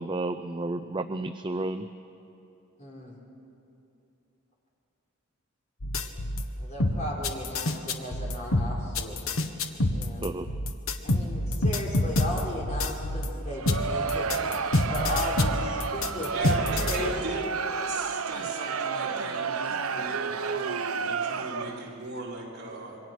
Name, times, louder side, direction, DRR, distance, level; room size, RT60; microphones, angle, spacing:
voice 1, 0.0-1.9 10.2-10.5, right 2 dB, 25° right, 9 dB, 0.5 m, -31 dB
voice 2, 2.8-3.2 6.6-9.2 9.9-10.2 11.0-14.3 14.9-17.1, left 1 dB, 35° left, -2 dB, 4.5 m, -36 dB
sound 1, 5.8-6.4 6.8-13.3 13.7-17.0, left 1 dB, 75° left, 1.3 m, -27 dB
Crowd, 13.5-22.0, right 5 dB, 85° right, 0.8 m, -31 dB
voice 3, 16.3-17.5 17.8-23.0, right 2 dB, 50° right, -4 dB, 4.8 m, -38 dB
27.0 x 23.5 x 6.1 m, 2.8 s
head